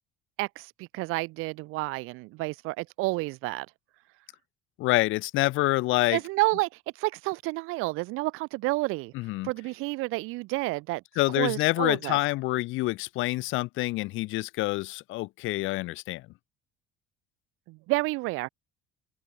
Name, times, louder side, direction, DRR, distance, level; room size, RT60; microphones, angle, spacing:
voice 1, 0.4-3.7 6.1-6.7 7.0-9.1 9.4-11.0 11.4-12.2 17.7-18.5, right 22 dB, 80° right, 1.8 m, -30 dB
voice 2, 4.8-6.2 9.1-9.5 11.2-16.2, left 19 dB, 70° left, 1.0 m, -27 dB
open air
cardioid pair, 145°, 21 cm